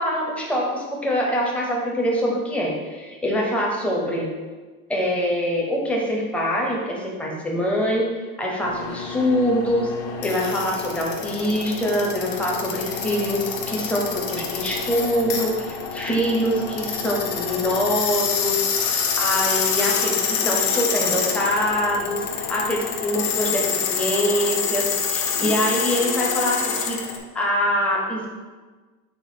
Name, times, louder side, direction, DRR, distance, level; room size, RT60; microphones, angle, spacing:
voice 1, 0.0-4.3 4.9-8.1 8.4-9.9 10.2-27.0 27.3-28.3, equal, 5° left, -2 dB, 0.5 m, -24 dB
sound 1, 8.6-27.2, left 6 dB, 50° left, 0.6 m, -27 dB
3.5 x 3.4 x 2.6 m, 1.3 s
hypercardioid pair, 95°, 46 cm